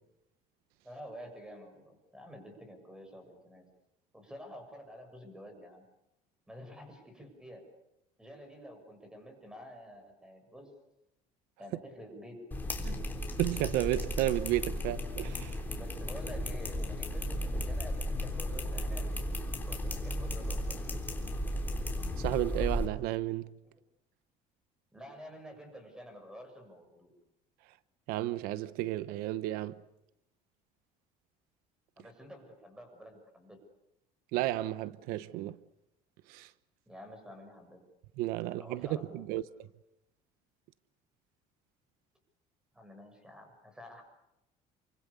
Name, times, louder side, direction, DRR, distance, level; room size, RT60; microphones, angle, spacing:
voice 1, 0.8-3.7 4.1-5.9 6.5-7.6 8.2-10.7 11.6-12.5 15.7-19.2 19.6-20.9 23.6-23.8 24.9-27.1 32.0-33.6 36.9-37.8 38.4-39.3 42.7-44.0, equal, 5° right, 6.9 m, -49 dB
sound 1, 12.5-22.9, left 1 dB, 10° left, 3.6 m, -35 dB
voice 2, 13.4-15.6 22.2-23.5 28.1-29.8 34.3-35.6 36.3-36.5 38.2-39.4, right 15 dB, 85° right, 0.9 m, -32 dB
29.0 x 24.5 x 7.0 m
cardioid pair, 150°, 15 cm